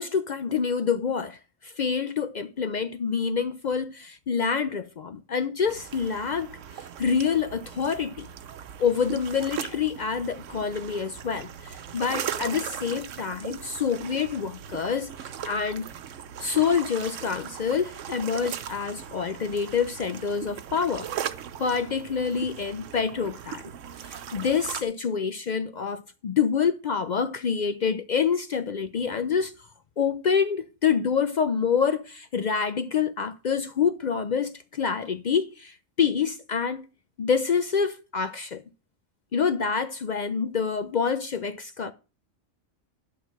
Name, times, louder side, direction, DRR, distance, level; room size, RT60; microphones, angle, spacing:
voice 1, 0.0-8.3 8.8-15.9 16.4-21.1 21.6-23.7 24.0-29.5 30.0-36.9 37.2-38.6 39.3-41.9, left 6 dB, 55° left, 0.5 m, -27 dB
sound 1, 5.7-24.8, right 9 dB, 90° right, 1.0 m, -38 dB
11.0 x 4.0 x 6.3 m
omnidirectional pair, 1.2 m